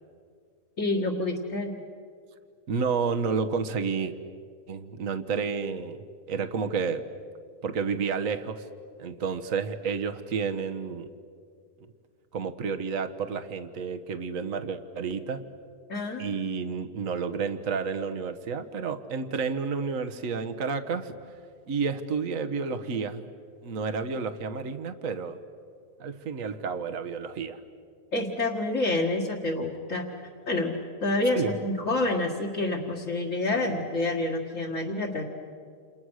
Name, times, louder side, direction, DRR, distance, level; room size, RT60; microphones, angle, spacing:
voice 1, 0.8-1.7 15.9-16.4 28.1-30.1 30.5-35.2, left 2 dB, 55° left, -3 dB, 2.3 m, -28 dB
voice 2, 2.7-4.1 4.7-6.0 6.3-7.1 7.6-8.6 9.0-11.1 12.3-15.4 16.2-21.1 21.7-23.2 23.6-25.4 26.0-27.6 31.3-31.5, right 5 dB, 60° right, 8 dB, 1.6 m, -30 dB
29.5 x 28.5 x 6.4 m, 2.2 s
omnidirectional pair, 1.6 m